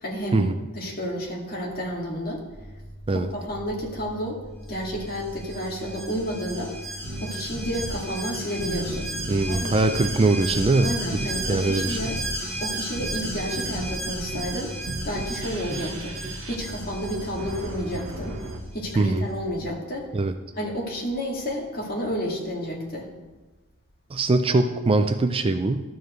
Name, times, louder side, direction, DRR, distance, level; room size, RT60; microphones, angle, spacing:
voice 1, 0.0-0.4 0.7-2.4 3.1-4.4 4.7-6.7 7.2-9.1 9.5-10.0 10.8-12.2 12.6-16.2 16.5-18.4 18.7-20.1 20.6-23.1, equal, 45° left, -2 dB, 2.0 m, -31 dB
sound 1, 2.5-19.7, equal, 80° left, 1.3 m, -42 dB
Alarm, 5.1-18.6 18.9-19.0, right 1 dB, 10° left, 1.7 m, -35 dB
sound 2, 7.0-18.6, right 2 dB, 60° right, 1.0 m, -36 dB
voice 2, 9.3-10.9 11.5-12.0 19.0-19.3 20.1-20.3 24.1-25.8, right 2 dB, 25° right, 8 dB, 0.4 m, -22 dB
13.0 x 7.1 x 3.1 m, 1.2 s
head